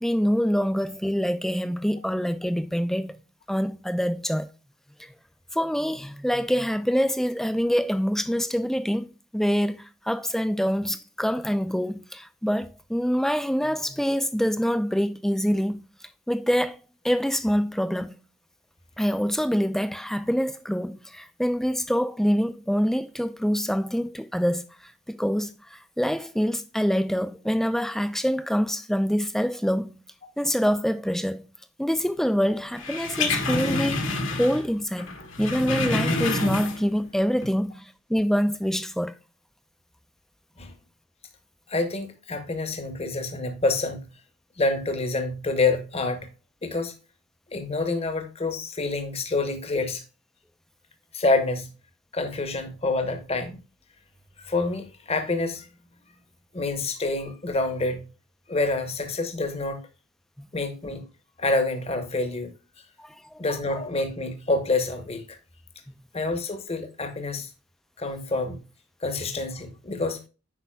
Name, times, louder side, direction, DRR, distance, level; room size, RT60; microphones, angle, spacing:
voice 1, 0.0-3.1 3.5-4.5 5.0-5.1 5.5-9.1 9.3-15.8 16.3-18.2 19.0-30.0 30.4-31.5 31.8-34.1 34.4-39.1 60.4-60.5 63.0-63.4 65.9-66.0, equal, ahead, 0.4 m, -25 dB
sound 1, 32.8-34.7 35.0-37.0 37.3-37.5, left 2 dB, 65° left, 1.4 m, -27 dB
voice 2, 41.7-44.1 44.6-46.3 46.6-46.9 47.5-50.0 51.1-51.7 52.1-53.6 54.4-55.7 56.5-58.1 58.5-59.8 60.5-61.1 61.4-62.5 63.4-65.4 66.1-67.5 68.0-68.6 69.0-70.2, left 2 dB, 30° left, 1.0 m, -27 dB
8.3 x 5.5 x 2.3 m
head